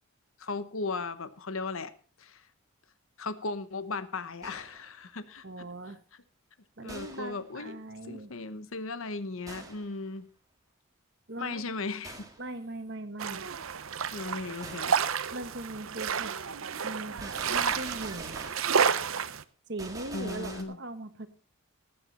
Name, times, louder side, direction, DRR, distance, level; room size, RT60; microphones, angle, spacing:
voice 1, 0.4-1.9 2.2-2.4 3.2-5.7 6.8-7.8 8.1-10.3 11.4-12.3 14.1-15.0 18.9-19.1 20.1-20.8, left 3 dB, 75° left, 13 dB, 1.0 m, -37 dB
Gunshot gunfire, 4.4-4.9 6.9-7.4 9.5-9.9 12.0-12.5 14.6-15.0 17.2-18.7 19.8-20.6, right 2 dB, 15° right, 1.7 m, -45 dB
voice 2, 5.4-6.0 6.8-8.3 11.3-11.7 12.4-13.5 15.3-16.3 16.8-18.4 19.7-21.3, right 2 dB, 55° right, 9 dB, 1.4 m, -40 dB
sound 1, 13.2-19.4, right 6 dB, 75° right, 0.7 m, -30 dB
19.0 x 8.8 x 4.2 m, 0.40 s
head